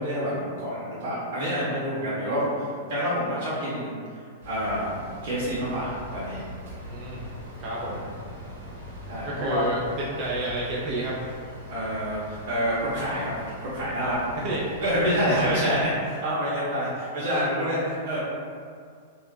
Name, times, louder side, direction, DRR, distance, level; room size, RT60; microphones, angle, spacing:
voice 1, 0.0-4.0 4.4-5.0 5.2-6.4 7.8-8.0 9.1-9.7 11.7-14.2 14.8-15.9 16.2-18.2, equal, 55° right, -9 dB, 1.0 m, -27 dB
sound 1, 4.4-15.9, equal, 85° right, 1.0 m, -41 dB
voice 2, 6.8-7.3 7.6-8.0 9.2-11.1 14.4-14.6 15.3-15.8, right 2 dB, 35° right, -5 dB, 0.5 m, -30 dB
2.5 x 2.0 x 3.7 m, 2.2 s
hypercardioid pair, 140°, 0 cm